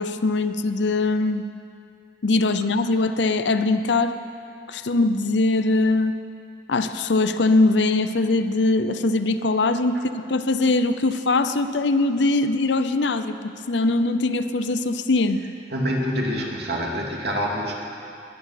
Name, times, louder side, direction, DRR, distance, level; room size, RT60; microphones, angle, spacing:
voice 1, 0.0-1.4 2.2-4.2 4.7-6.2 6.7-13.4 13.7-15.4, left 2 dB, 75° left, 10 dB, 0.7 m, -21 dB
voice 2, 15.7-17.7, equal, 65° right, -1 dB, 2.5 m, -26 dB
20.0 x 11.0 x 5.9 m, 2.5 s
head